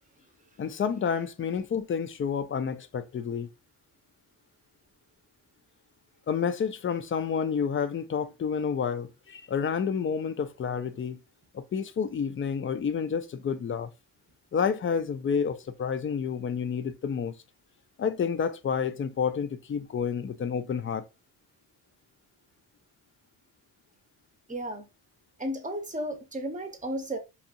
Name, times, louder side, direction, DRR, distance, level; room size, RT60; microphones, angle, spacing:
voice 1, 0.6-3.5 6.3-11.2 11.5-13.9 14.5-17.4 18.0-21.0, left 6 dB, 30° left, 0.4 m, -29 dB
voice 2, 24.5-24.9 25.4-27.2, right 1 dB, 20° right, 0.7 m, -33 dB
2.6 x 2.4 x 2.7 m
cardioid pair, 85°, 42 cm